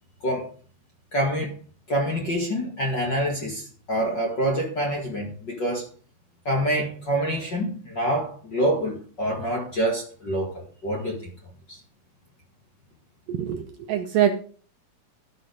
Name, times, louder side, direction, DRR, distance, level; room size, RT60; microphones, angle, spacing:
voice 1, 1.1-1.5 1.9-5.9 6.5-11.3, right 1 dB, 35° left, 1.9 m, -26 dB
voice 2, 13.3-14.3, right 10 dB, 75° right, 2.2 m, -24 dB
12.5 x 6.2 x 5.0 m
omnidirectional pair, 4.6 m